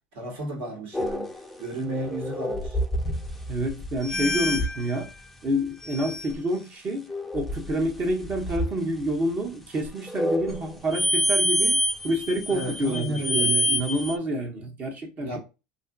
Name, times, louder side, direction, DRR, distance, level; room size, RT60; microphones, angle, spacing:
voice 1, 0.1-2.8 12.5-13.6 15.2-15.4, right 1 dB, 65° right, 1.6 m, -33 dB
sound 1, 0.9-5.0 5.8-6.3 7.1-8.7 9.8-14.2, left 1 dB, 5° left, 0.4 m, -27 dB
voice 2, 3.5-5.1 5.4-11.8 12.0-15.4, equal, 35° right, 0.9 m, -28 dB
2.6 x 2.5 x 2.3 m
supercardioid pair, 110°, 4 cm